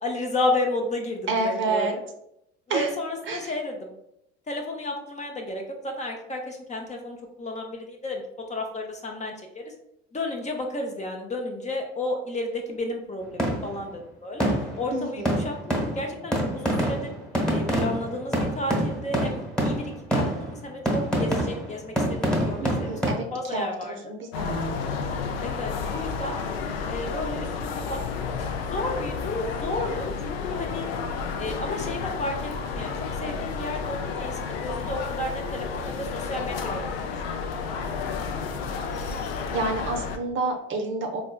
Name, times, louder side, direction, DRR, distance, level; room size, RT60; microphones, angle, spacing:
voice 1, 0.0-2.0 2.7-3.9 4.5-8.2 8.5-9.7 10.1-14.5 14.8-17.1 17.5-23.0 23.3-24.0 25.4-26.4 26.8-28.3 28.7-30.9 31.4-32.9 33.2-37.0 37.2-37.4, left 1 dB, 20° left, 2 dB, 0.6 m, -32 dB
voice 2, 1.3-2.0 2.7-2.9 3.3-3.4 14.9-15.4 22.6-23.3 23.5-24.9 39.0-39.2 39.5-41.2, right 3 dB, 40° right, 3 dB, 0.6 m, -29 dB
sound 1, 13.4-13.9 14.4-14.9 15.2-23.1, equal, 5° left, 1.2 m, -26 dB
sound 2, 24.3-40.2, left 5 dB, 65° left, 0.5 m, -31 dB
4.3 x 2.2 x 2.3 m, 0.79 s
figure-of-eight pair, 60°, 32 cm